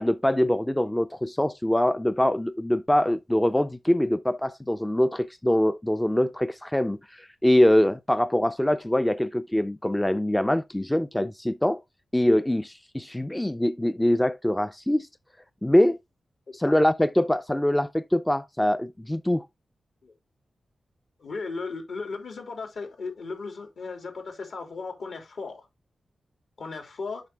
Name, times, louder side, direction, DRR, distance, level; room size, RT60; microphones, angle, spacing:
voice 1, 0.0-11.8 12.1-15.1 15.6-16.0 16.5-19.5, left 1 dB, 10° left, 0.4 m, -23 dB
voice 2, 21.2-25.7 26.6-27.2, left 4 dB, 70° left, 3.1 m, -36 dB
7.4 x 5.7 x 3.4 m
wide cardioid pair, 105°, 0 cm